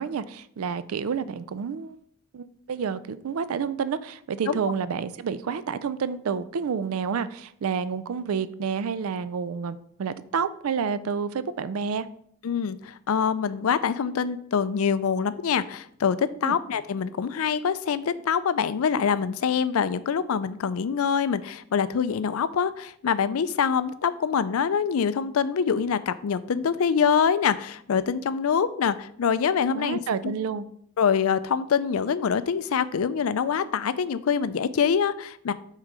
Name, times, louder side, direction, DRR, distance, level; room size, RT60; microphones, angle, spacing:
voice 1, 0.0-2.0 2.3-12.1 16.4-16.6 29.7-30.6, right 6 dB, 90° right, 14 dB, 0.4 m, -29 dB
voice 2, 12.4-30.3 31.0-35.5, left 6 dB, 85° left, 15 dB, 0.4 m, -25 dB
6.4 x 3.8 x 4.7 m, 0.67 s
head